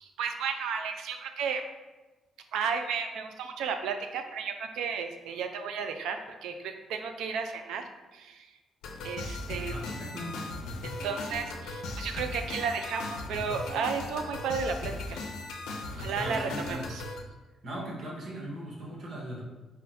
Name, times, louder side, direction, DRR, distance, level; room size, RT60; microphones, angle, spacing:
voice 1, 0.0-1.6 2.5-7.9 8.1-8.5 9.0-9.7 10.8-15.2 16.0-17.0, right 6 dB, 85° right, 6 dB, 0.4 m, -33 dB
sound 1, 8.8-17.2, left 2 dB, 85° left, 0.5 m, -38 dB
voice 2, 9.5-10.4 15.9-16.8 17.6-19.4, equal, 50° right, -2 dB, 1.1 m, -39 dB
4.2 x 2.1 x 4.1 m, 1.2 s
cardioid pair, 90°, 0 cm